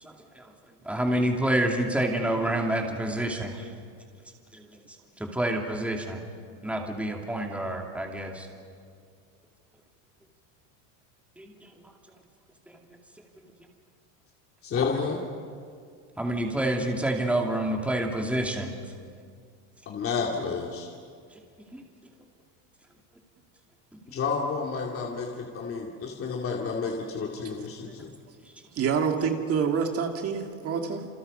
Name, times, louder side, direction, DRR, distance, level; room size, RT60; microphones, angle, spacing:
voice 1, 0.0-0.5 0.8-3.7 4.5-4.8 5.2-6.2 6.6-8.5 11.4-11.7 12.7-12.8 16.2-18.7 21.7-21.8, right 1 dB, 5° right, 1 dB, 2.6 m, -28 dB
voice 2, 14.6-15.2 19.9-20.9 24.1-28.1, left 5 dB, 30° left, 0 dB, 2.5 m, -30 dB
voice 3, 28.7-31.1, right 6 dB, 35° right, 4 dB, 2.1 m, -27 dB
29.0 x 28.0 x 5.5 m, 2.2 s
supercardioid pair, 145°, 43 cm